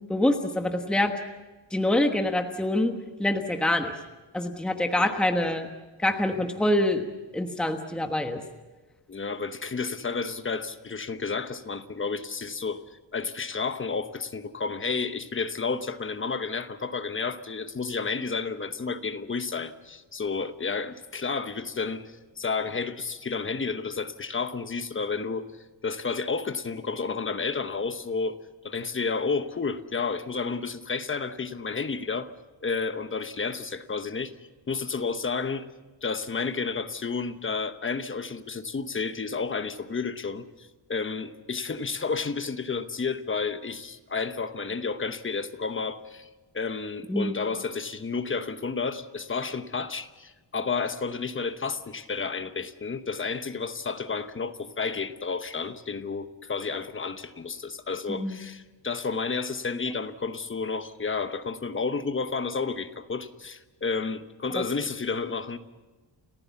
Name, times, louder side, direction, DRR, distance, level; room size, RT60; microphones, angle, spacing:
voice 1, 0.1-1.1 1.7-2.9 3.2-3.9 4.3-5.7 6.0-7.0 7.3-8.4 47.1-47.3 58.1-58.4 64.5-64.6, left 1 dB, ahead, 4 dB, 1.2 m, -25 dB
voice 2, 9.1-28.4 28.6-32.3 32.6-34.3 34.7-35.7 36.0-46.3 46.5-65.6, left 4 dB, 25° left, 10 dB, 1.0 m, -31 dB
30.0 x 15.0 x 7.1 m, 1.2 s
wide cardioid pair, 160°, 45 cm